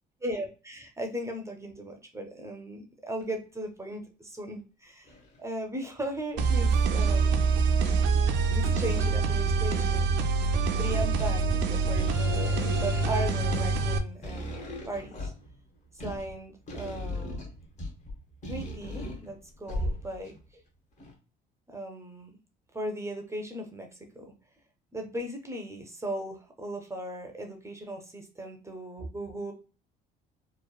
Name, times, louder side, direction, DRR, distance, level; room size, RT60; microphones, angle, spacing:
voice 1, 0.2-7.8 8.5-10.2 10.8-15.3 15.9-17.5 18.5-20.6 21.7-22.3 22.7-24.4 24.9-29.5, right 1 dB, 15° right, 3 dB, 0.5 m, -37 dB
sound 1, 3.2-3.3 3.9-4.0 5.1-5.4 6.1-6.6 7.0-7.1 7.4-8.2 8.5-10.1 10.6-20.4 21.0-21.1, equal, 40° left, 0.9 m, -38 dB
sound 2, 6.4-14.0, right 4 dB, 70° right, 0.4 m, -25 dB
3.0 x 2.1 x 2.2 m, 0.35 s
cardioid pair, 90°, 19 cm